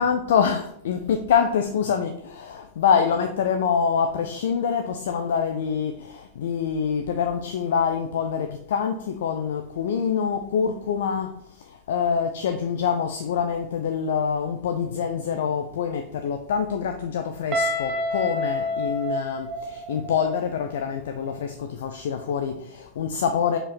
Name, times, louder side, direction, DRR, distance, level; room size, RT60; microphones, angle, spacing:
voice 1, 0.0-11.3 11.6-23.6, left 7 dB, 60° left, 5 dB, 0.6 m, -25 dB
Guitar, 17.5-20.3, left 1 dB, 35° right, 1.3 m, -28 dB
6.9 x 5.5 x 4.3 m, 0.71 s
figure-of-eight pair, 90°, 0 cm